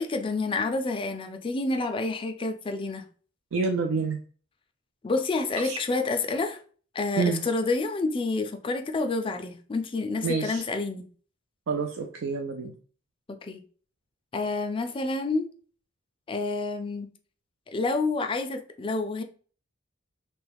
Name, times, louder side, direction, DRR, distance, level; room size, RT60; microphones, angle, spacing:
voice 1, 0.0-3.0 5.0-6.6 6.9-11.1 13.3-13.6 14.3-15.5 16.3-17.1 17.7-19.2, left 3 dB, 25° left, 0.3 m, -28 dB
voice 2, 3.5-4.2 5.6-5.8 7.2-7.4 10.2-10.6 11.7-12.7, right 4 dB, 70° right, 0.4 m, -28 dB
3.1 x 2.2 x 3.3 m
head